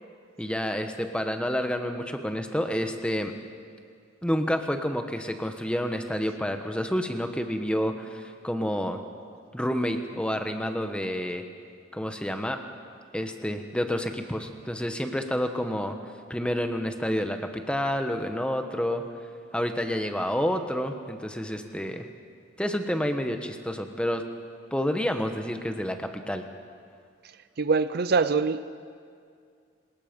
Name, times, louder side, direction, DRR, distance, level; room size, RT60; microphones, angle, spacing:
voice 1, 0.4-3.3 4.2-9.0 9.5-11.4 11.9-12.6 13.1-15.9 16.3-19.0 19.5-22.1 22.6-24.2 24.7-26.4, equal, 5° left, 6 dB, 1.1 m, -29 dB
voice 2, 27.6-28.7, right 4 dB, 55° right, 13 dB, 0.6 m, -24 dB
26.5 x 20.0 x 5.3 m, 2.2 s
head